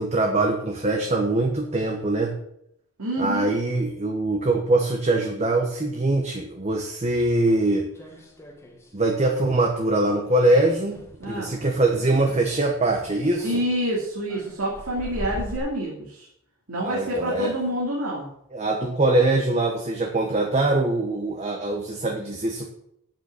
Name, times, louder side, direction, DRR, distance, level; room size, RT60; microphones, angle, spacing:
voice 1, 0.0-2.3 3.2-7.9 8.9-11.0 11.3-13.6 16.8-17.5 18.5-22.7, right 2 dB, 30° right, 2 dB, 1.1 m, -23 dB
voice 2, 3.0-3.5 11.2-11.6 13.4-16.3 16.7-18.3, equal, 75° right, -4 dB, 2.6 m, -27 dB
sound 1, 7.5-9.0 9.2-9.6 9.9-10.1 10.5-15.6, equal, 10° left, 1.4 m, -41 dB
8.9 x 7.5 x 6.7 m, 0.74 s
head